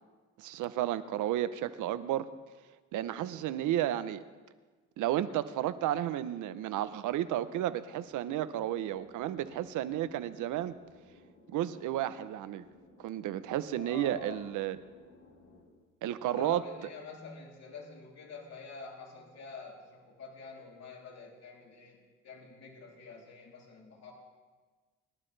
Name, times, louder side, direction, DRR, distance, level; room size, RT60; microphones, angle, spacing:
voice 1, 0.4-2.3 2.9-4.2 5.0-10.8 11.5-12.6 13.0-14.8 16.0-16.6, right 12 dB, 85° right, 13 dB, 0.8 m, -32 dB
sound 1, 8.0-15.6, left 2 dB, 80° left, 5.6 m, -58 dB
voice 2, 13.8-14.5 16.0-22.0 22.2-24.1, left 4 dB, 60° left, -3 dB, 3.3 m, -47 dB
23.0 x 12.0 x 3.3 m, 1.4 s
cardioid pair, 90°, 30 cm